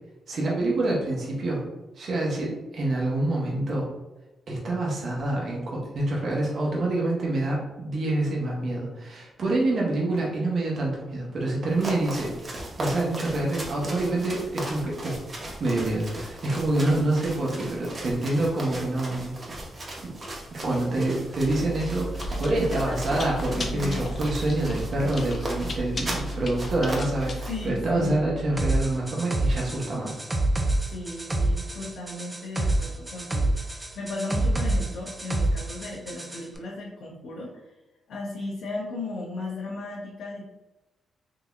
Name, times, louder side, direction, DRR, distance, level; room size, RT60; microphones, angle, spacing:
voice 1, 0.3-1.6 2.0-3.9 4.5-12.3 12.8-15.2 15.6-19.3 20.0-20.1 20.5-30.2, right 2 dB, 60° right, -3 dB, 0.9 m, -27 dB
sound 1, 11.7-27.7, right 1 dB, 40° right, 0.9 m, -37 dB
Chewing mastication, 21.4-28.6, equal, 45° left, 0.6 m, -34 dB
voice 2, 22.5-23.2 23.5-24.1 27.5-28.3 30.9-37.7 38.1-40.5, left 2 dB, 75° left, -5 dB, 0.7 m, -36 dB
sound 2, 28.6-36.4, right 1 dB, 15° right, 0.5 m, -27 dB
3.8 x 2.8 x 2.4 m, 1.0 s
cardioid pair, 80°, 0 cm